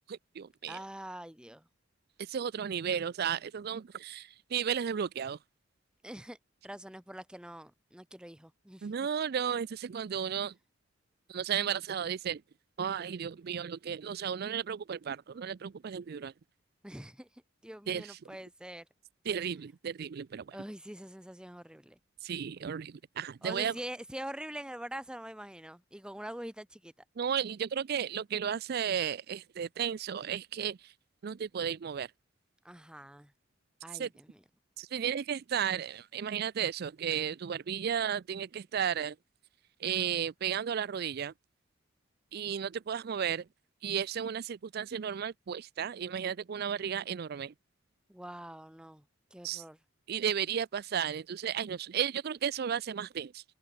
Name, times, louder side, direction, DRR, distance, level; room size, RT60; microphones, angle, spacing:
voice 1, 0.1-0.8 2.2-5.4 8.8-10.5 11.3-12.4 12.8-16.3 17.9-18.2 19.3-20.6 22.2-23.7 27.2-30.9 31.2-32.1 33.9-34.1 34.8-39.1 39.8-41.3 42.3-43.4 43.8-47.5 49.4-49.6 50.1-53.4, right 8 dB, 55° right, 0.4 m, -34 dB
voice 2, 0.7-1.7 6.0-6.4 6.6-8.9 16.8-17.3 17.6-18.9 20.5-22.0 23.4-26.9 32.6-33.3 33.8-34.4 48.1-49.0 49.3-49.8, right 1 dB, 5° right, 1.0 m, -44 dB
head